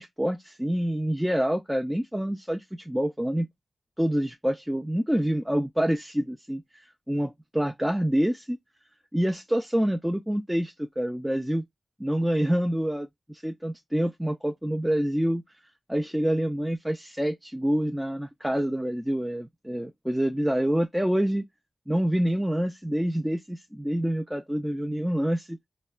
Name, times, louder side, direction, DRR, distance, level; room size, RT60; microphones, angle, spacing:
voice 1, 0.0-3.5 4.0-8.6 9.1-11.6 12.0-15.4 15.9-21.4 21.9-25.6, equal, 5° right, 0.4 m, -27 dB
4.1 x 2.1 x 2.3 m
wide cardioid pair, 85°, 0 cm